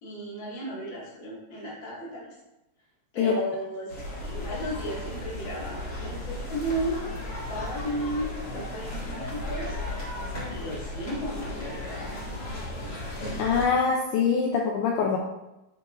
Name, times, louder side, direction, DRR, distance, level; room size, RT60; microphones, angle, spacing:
voice 1, 0.0-2.2 3.1-7.0 7.5-9.8 10.5-12.1, equal, 70° left, -8 dB, 0.9 m, -34 dB
sound 1, 3.9-13.6, left 1 dB, 50° left, 1.7 m, -35 dB
voice 2, 13.4-15.2, left 6 dB, 90° left, 0 dB, 2.2 m, -24 dB
10.5 x 4.6 x 2.5 m, 0.94 s
omnidirectional pair, 5.4 m